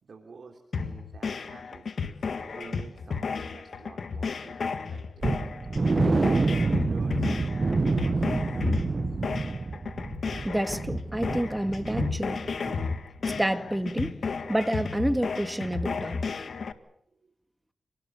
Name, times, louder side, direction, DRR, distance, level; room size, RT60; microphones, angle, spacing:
voice 1, 0.0-5.3 5.9-8.6, right 4 dB, 60° right, 3 dB, 3.4 m, -49 dB
sound 1, 0.7-16.7, left 5 dB, 65° left, 1.8 m, -33 dB
sound 2, 5.2-13.0 13.2-13.4 13.8-13.9, right 3 dB, 40° right, 1.0 m, -28 dB
voice 2, 10.4-12.4 13.2-14.2 14.5-16.2, right 1 dB, 10° right, 9 dB, 2.1 m, -29 dB
27.5 x 19.5 x 7.1 m, 0.74 s
cardioid pair, 70°, 0 cm